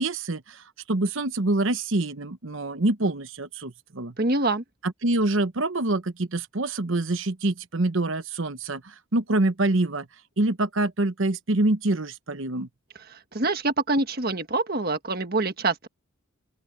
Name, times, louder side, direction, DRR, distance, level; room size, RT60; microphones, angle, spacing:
voice 1, 0.0-4.1 4.8-10.1 10.4-12.7, right 2 dB, 65° right, 1.1 m, -26 dB
voice 2, 4.2-4.6 13.1-15.9, right 2 dB, 45° right, 1.6 m, -25 dB
open air
head